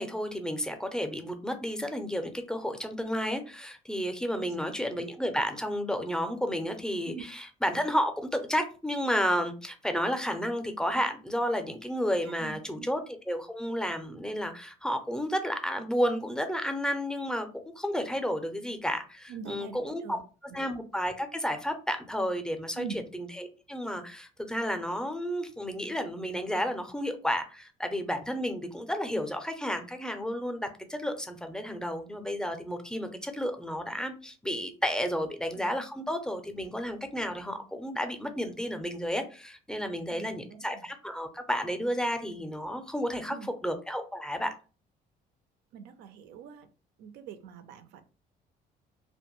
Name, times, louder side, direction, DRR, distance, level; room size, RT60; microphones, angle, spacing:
voice 1, 0.0-20.2 20.4-44.5, equal, 5° left, 6 dB, 0.4 m, -32 dB
voice 2, 4.4-4.7 7.1-7.2 12.4-12.9 19.3-20.2 20.5-20.6 22.8-23.0 35.6-35.7 40.1-40.9 43.3-43.5 45.7-46.7 47.0-48.0, right 7 dB, 90° right, 10 dB, 0.4 m, -43 dB
2.5 x 2.1 x 2.9 m, 0.34 s
cardioid pair, 110°, 17 cm